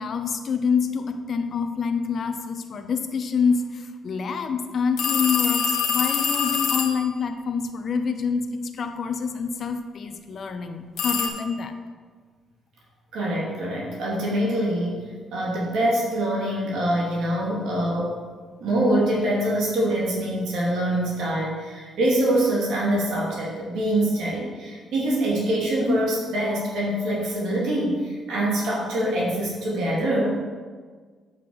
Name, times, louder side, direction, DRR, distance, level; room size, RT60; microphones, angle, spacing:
voice 1, 0.0-11.7, left 5 dB, 55° left, 7 dB, 0.8 m, -26 dB
sound 1, 5.0-7.1 11.0-11.3, left 7 dB, 80° left, 1.1 m, -24 dB
voice 2, 13.1-15.0 15.3-18.2 18.6-30.4, right 1 dB, 80° right, -4 dB, 2.3 m, -24 dB
7.8 x 5.8 x 4.7 m, 1.5 s
cardioid pair, 90°, 0 cm